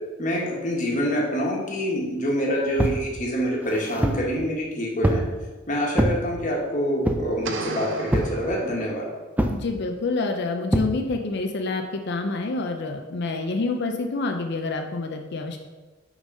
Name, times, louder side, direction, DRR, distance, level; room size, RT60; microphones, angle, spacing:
voice 1, 0.2-5.2 5.7-9.1, equal, 40° left, -2 dB, 1.4 m, -26 dB
sound 1, 2.8-3.0 3.6-4.3 5.0-5.3 5.9-6.2 7.0-7.4 8.1-8.4 9.4-9.6 10.7-10.9, right 1 dB, 10° right, 0.4 m, -23 dB
sound 2, 7.4-9.4, right 4 dB, 65° right, 0.6 m, -35 dB
voice 2, 9.5-15.6, left 3 dB, 60° left, 4 dB, 0.5 m, -27 dB
6.0 x 4.0 x 5.4 m, 1.2 s
head